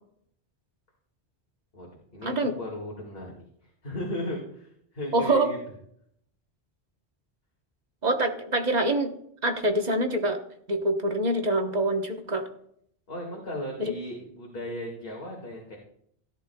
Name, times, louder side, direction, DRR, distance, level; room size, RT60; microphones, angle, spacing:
voice 1, 1.7-5.6 13.1-15.8, left 1 dB, 65° left, -2 dB, 2.2 m, -36 dB
voice 2, 5.1-5.5 8.0-9.1 9.4-10.4 10.7-12.5 13.8-13.9, right 1 dB, 45° right, 5 dB, 1.2 m, -25 dB
16.5 x 10.5 x 2.3 m, 0.69 s
omnidirectional pair, 1.1 m